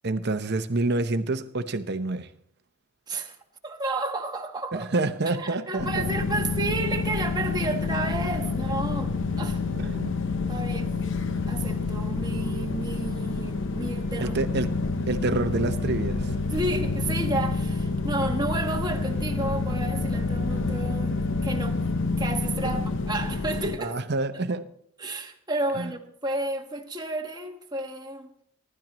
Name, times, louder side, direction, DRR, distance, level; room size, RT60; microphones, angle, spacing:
voice 1, 0.0-2.3 4.7-6.1 9.8-10.2 14.2-14.7 15.1-16.3 22.6-22.8 23.8-24.6 25.7-25.9, right 2 dB, 50° right, 10 dB, 0.8 m, -28 dB
voice 2, 3.6-4.9 5.4-9.6 10.5-10.9 11.5-14.4 16.5-21.1 21.4-21.8 22.2-23.9 25.0-28.3, right 2 dB, 20° right, 3 dB, 1.2 m, -31 dB
sound 1, 5.8-23.8, left 3 dB, 55° left, 0.8 m, -28 dB
24.0 x 12.0 x 3.1 m, 0.66 s
head